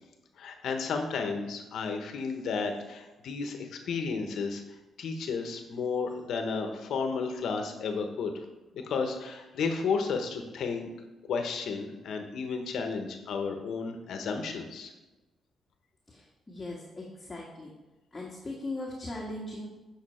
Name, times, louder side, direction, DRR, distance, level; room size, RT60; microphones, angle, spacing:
voice 1, 0.4-4.6 5.0-8.3 8.7-10.9 11.3-14.9, left 5 dB, 70° left, 5 dB, 1.1 m, -32 dB
voice 2, 16.5-17.7 18.1-19.7, left 2 dB, 20° left, -4 dB, 1.6 m, -38 dB
8.6 x 5.9 x 4.4 m, 1.1 s
cardioid pair, 105°, 0 cm